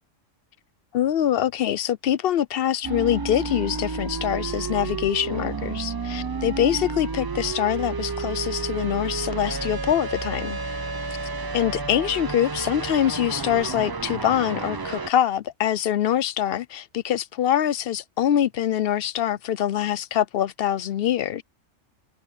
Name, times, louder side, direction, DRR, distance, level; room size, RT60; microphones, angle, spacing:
voice 1, 0.9-10.6 11.5-21.4, left 10 dB, 60° left, 0.7 m, -24 dB
sound 1, 2.8-15.1, right 4 dB, 40° right, 0.3 m, -31 dB
omnidirectional pair, 1.3 m